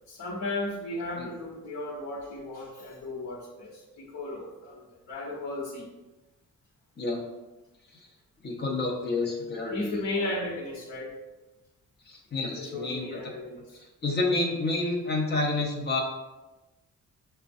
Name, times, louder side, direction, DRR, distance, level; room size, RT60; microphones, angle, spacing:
voice 1, 0.1-5.9 9.7-11.1 12.4-13.7, left 2 dB, 65° left, -7 dB, 0.9 m, -35 dB
voice 2, 8.4-10.3 12.1-13.3 13.8-16.0, left 2 dB, 35° left, 0 dB, 0.8 m, -29 dB
6.0 x 2.2 x 2.5 m, 1.1 s
cardioid pair, 135°, 31 cm